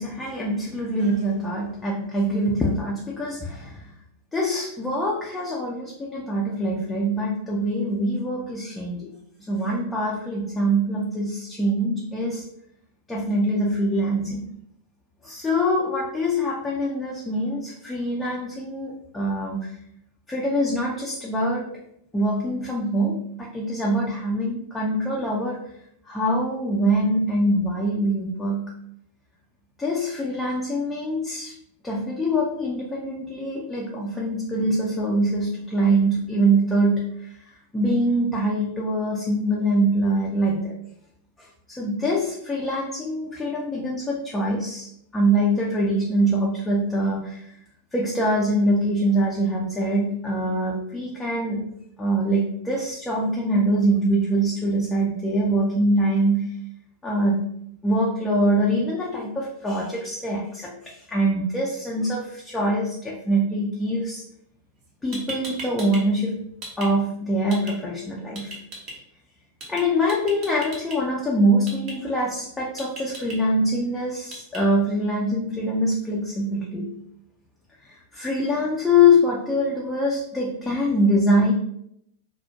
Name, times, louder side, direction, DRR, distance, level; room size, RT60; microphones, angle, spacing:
voice 1, 0.0-3.8 4.3-9.1 9.5-12.4 13.1-14.4 15.2-19.7 20.3-21.7 22.1-25.6 26.1-28.7 29.8-31.5 31.8-37.1 37.7-40.8 41.7-47.5 47.9-51.6 52.0-56.5 57.0-57.5 57.8-64.2 65.0-66.3 66.8-68.5 69.7-76.9 78.1-81.5, equal, 10° left, -4 dB, 0.4 m, -24 dB
sound 1, 64.8-64.9 65.1-66.0 66.3-66.9 67.5-67.7 68.3-68.9 69.6-69.8 70.1-71.0 71.7-71.9 72.8-73.3 74.3-74.6, right 2 dB, 40° right, 0.7 m, -36 dB
2.3 x 2.0 x 2.7 m, 0.74 s
figure-of-eight pair, 90°, 0 cm